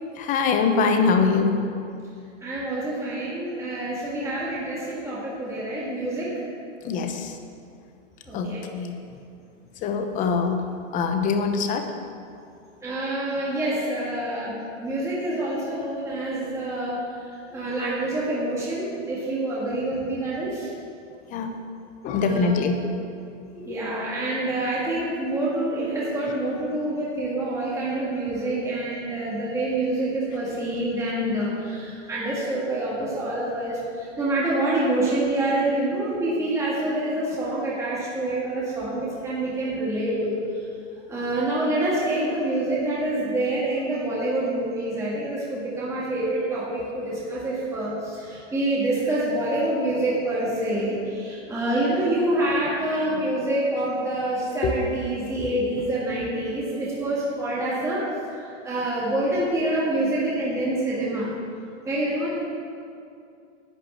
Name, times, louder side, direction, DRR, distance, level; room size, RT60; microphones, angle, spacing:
voice 1, 0.2-1.7 6.8-7.3 8.3-9.0 9.8-11.9 21.3-21.5 22.0-22.8 54.6-54.7 55.4-55.5, left 4 dB, 20° left, 6 dB, 0.8 m, -23 dB
voice 2, 2.4-6.3 8.3-8.6 12.8-17.0 17.5-20.7 22.2-22.6 23.6-40.4 41.1-61.3 61.8-62.3, right 1 dB, 10° right, -7 dB, 1.8 m, -26 dB
11.0 x 5.8 x 8.5 m, 2.4 s
supercardioid pair, 150°, 38 cm